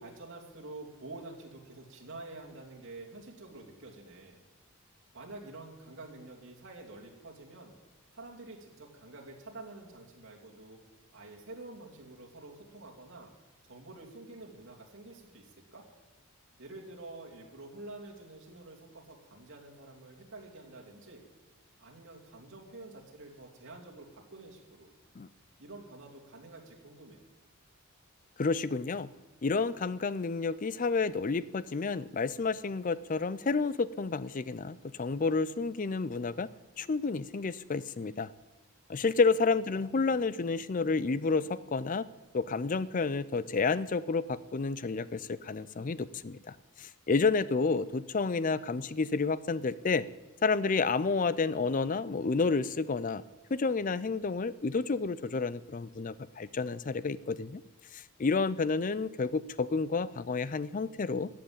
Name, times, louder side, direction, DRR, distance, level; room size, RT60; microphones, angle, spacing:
voice 1, 0.0-4.4 5.1-7.8 8.1-10.8 11.1-13.3 13.6-15.8 16.6-21.3 21.8-24.9 25.6-27.2 39.0-39.1, right 2 dB, 60° right, -1 dB, 2.9 m, -48 dB
voice 2, 28.4-29.1 29.4-36.5 36.8-38.3 38.9-42.1 42.3-50.1 50.4-53.2 53.5-57.6 57.9-61.3, left 4 dB, 35° left, 17 dB, 0.4 m, -30 dB
14.5 x 7.8 x 8.8 m, 1.2 s
head